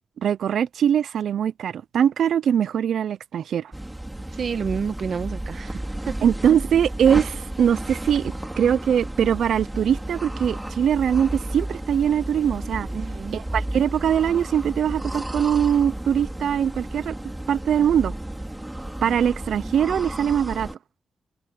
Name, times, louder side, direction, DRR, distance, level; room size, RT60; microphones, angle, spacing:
voice 1, 0.2-3.7 6.2-12.9 13.3-17.2 17.5-18.1 19.0-20.7, right 8 dB, 90° right, 0.5 m, -22 dB
sound 1, 3.7-20.7, right 1 dB, 10° right, 4.7 m, -32 dB
voice 2, 4.3-6.1 12.9-13.4, right 6 dB, 55° right, 1.7 m, -29 dB
wide cardioid pair, 145°, 0 cm